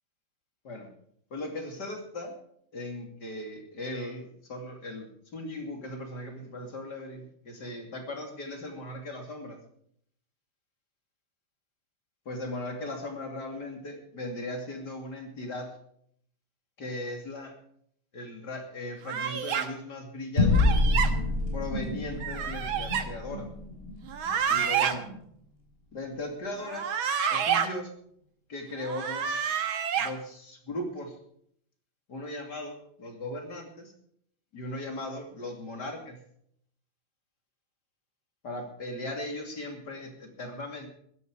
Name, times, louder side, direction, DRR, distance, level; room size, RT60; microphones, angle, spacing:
voice 1, 1.3-2.3 2.7-9.6 12.2-15.7 16.8-17.5 18.1-20.8 21.5-23.5 24.3-25.1 25.9-26.9 27.3-27.9 28.5-29.4 30.0-31.2 32.1-33.9 34.5-36.2 38.4-40.9, left 1 dB, 55° left, 3 dB, 3.2 m, -38 dB
sound 1, 19.1-19.7 20.5-21.1 22.2-23.0 24.1-24.9 26.6-27.7 28.8-30.1, right 8 dB, 85° right, 2.1 m, -28 dB
sound 2, 20.4-25.2, left 2 dB, 25° left, 5.6 m, -28 dB
15.5 x 13.0 x 4.8 m, 0.67 s
omnidirectional pair, 2.2 m